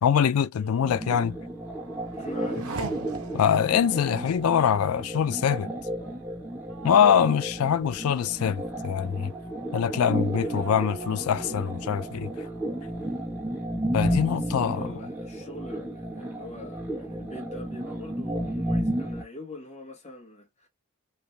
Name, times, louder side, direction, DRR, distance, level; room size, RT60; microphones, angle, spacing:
voice 1, 0.0-1.3 3.3-5.7 6.8-9.3 9.7-12.3 13.9-14.8, left 8 dB, 80° left, 0.4 m, -23 dB
voice 2, 0.6-0.9 2.1-2.8 3.2-3.4 14.3-20.7, left 1 dB, 30° left, 1.3 m, -43 dB
sound 1, 0.8-19.2, right 1 dB, 10° right, 0.8 m, -33 dB
Race car auto racing / Accelerating revving vroom, 1.3-14.5 14.9-15.6, right 3 dB, 90° right, 0.7 m, -43 dB
3.3 x 2.6 x 2.6 m
head